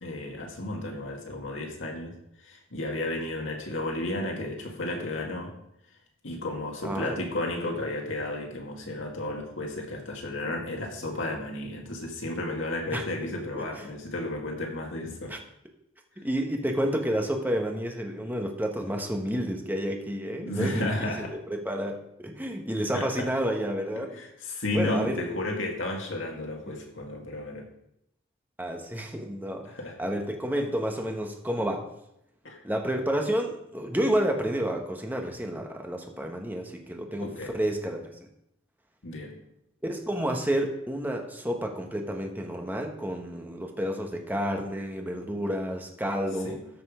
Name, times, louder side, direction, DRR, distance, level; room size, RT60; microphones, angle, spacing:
voice 1, 0.0-5.5 6.2-15.4 20.4-21.4 22.9-23.3 24.0-27.7 29.6-30.0 32.4-32.6 37.2-37.5 39.0-39.4 46.4-46.7, left 2 dB, 70° left, 1 dB, 2.1 m, -33 dB
voice 2, 6.8-7.3 12.9-13.0 13.5-13.9 15.3-15.4 16.2-24.2 24.7-25.2 28.6-29.7 30.0-31.9 32.6-38.1 39.8-46.6, equal, 10° right, 3 dB, 1.2 m, -30 dB
13.5 x 5.4 x 5.0 m, 0.79 s
head